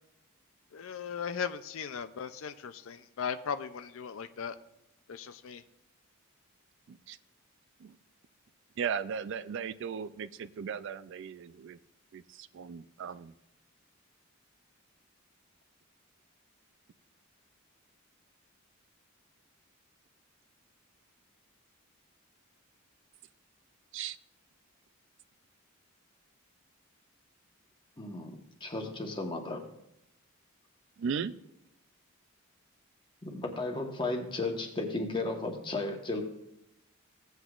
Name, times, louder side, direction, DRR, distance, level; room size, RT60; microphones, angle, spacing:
voice 1, 0.7-4.6 5.1-5.6, left 7 dB, 65° left, 11 dB, 0.4 m, -37 dB
voice 2, 8.8-11.8 12.1-13.3 23.9-24.2 31.0-31.4, right 6 dB, 60° right, 14 dB, 0.3 m, -37 dB
voice 3, 28.0-28.3 28.6-29.7 33.2-36.2, left 2 dB, 20° left, 2 dB, 1.2 m, -34 dB
16.5 x 7.9 x 2.4 m, 0.85 s
head